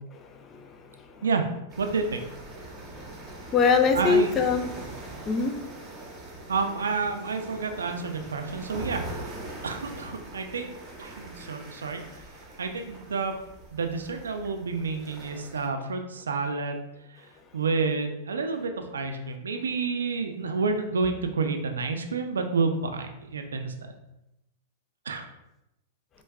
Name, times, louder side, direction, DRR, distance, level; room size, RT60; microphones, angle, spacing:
voice 1, 0.2-1.3 3.5-4.7 5.3-5.6, left 5 dB, 30° left, 6 dB, 0.4 m, -24 dB
sound 1, 1.7-15.7, right 2 dB, 20° right, 0.9 m, -42 dB
voice 2, 1.8-2.2 3.9-4.3 6.5-9.4 9.6-10.7 11.0-12.0 12.6-13.3 13.7-16.8 17.1-17.3 17.5-23.9 25.1-25.2, right 4 dB, 90° right, 5 dB, 0.4 m, -29 dB
4.6 x 2.2 x 2.2 m, 0.88 s
hypercardioid pair, 115°, 0 cm